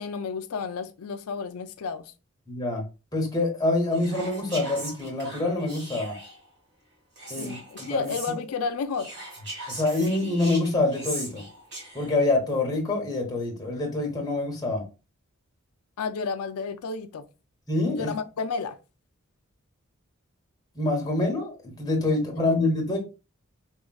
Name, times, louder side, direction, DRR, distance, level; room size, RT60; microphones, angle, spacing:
voice 1, 0.0-2.1 7.3-9.1 16.0-17.3 17.9-18.8, left 5 dB, 90° left, 0.4 m, -31 dB
voice 2, 2.5-2.9 3.1-6.2 7.3-8.1 9.7-11.4 11.9-14.9 17.7-18.1 20.7-23.0, left 2 dB, 20° left, 1.2 m, -26 dB
Whispering, 3.9-6.4 7.2-8.3 8.9-12.2, right 1 dB, 55° right, 1.5 m, -39 dB
4.5 x 3.0 x 2.3 m
head